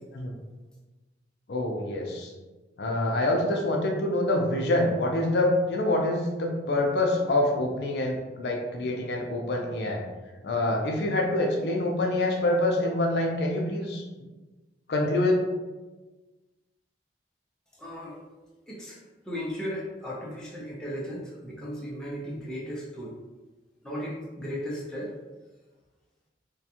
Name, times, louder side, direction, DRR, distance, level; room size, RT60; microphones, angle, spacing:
voice 1, 1.5-2.3 2.8-10.0 10.4-14.0 14.9-15.4, left 1 dB, 65° left, 1 dB, 0.5 m, -26 dB
voice 2, 17.8-18.2 18.7-19.0 19.3-23.1 23.8-25.1, equal, 5° left, -6 dB, 0.4 m, -36 dB
2.4 x 2.3 x 2.7 m, 1.2 s
head